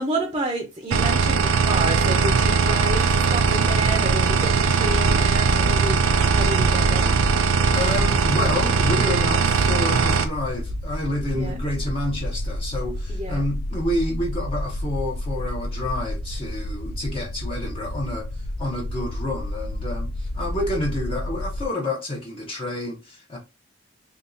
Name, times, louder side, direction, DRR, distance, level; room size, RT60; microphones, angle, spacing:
voice 1, 0.0-7.1 11.3-11.6 13.1-13.4, right 2 dB, 25° right, 0.6 m, -30 dB
sound 1, 0.9-10.3, right 5 dB, 85° right, 0.4 m, -20 dB
sound 2, 1.9-21.7, left 1 dB, 60° left, 0.4 m, -30 dB
voice 2, 7.6-23.4, left 1 dB, 30° left, 0.7 m, -29 dB
3.5 x 2.8 x 2.6 m
head